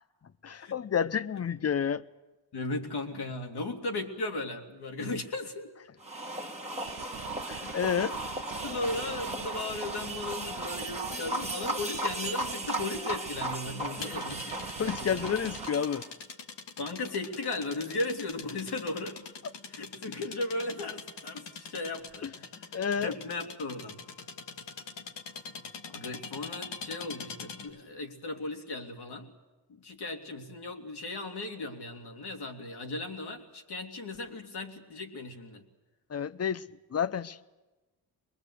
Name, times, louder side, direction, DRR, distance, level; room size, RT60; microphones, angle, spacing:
voice 1, 0.4-2.0 7.5-8.1 14.8-16.0 22.2-22.3 22.7-23.1 36.1-36.6 36.9-37.4, left 7 dB, 35° left, 0.8 m, -30 dB
voice 2, 2.5-5.7 7.6-7.8 8.6-15.3 16.8-19.2 19.7-22.3 23.0-24.0 25.9-29.3 29.7-35.6, left 2 dB, 60° left, 2.8 m, -36 dB
sound 1, 6.0-16.1, right 2 dB, 15° right, 2.1 m, -36 dB
sound 2, 6.9-15.7, right 11 dB, 75° right, 0.8 m, -46 dB
sound 3, 14.0-27.8, left 5 dB, 80° left, 1.9 m, -44 dB
23.0 x 21.0 x 8.2 m
cardioid pair, 65°, 43 cm